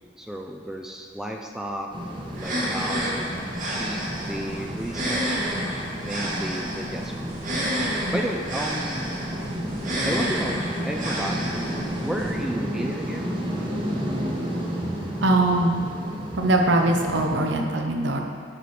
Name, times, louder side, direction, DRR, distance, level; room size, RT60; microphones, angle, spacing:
voice 1, 0.2-1.9 2.4-5.5 6.1-7.4 8.1-9.2 10.1-11.7 12.0-13.4, equal, 5° right, 1 dB, 0.3 m, -33 dB
sound 1, 1.9-17.4, equal, 25° right, 1.0 m, -32 dB
sound 2, 2.3-12.3, equal, 45° right, 1.5 m, -30 dB
voice 2, 15.2-15.8 16.3-18.2, right 2 dB, 65° right, 2 dB, 0.8 m, -21 dB
11.0 x 4.8 x 4.2 m, 2.3 s
head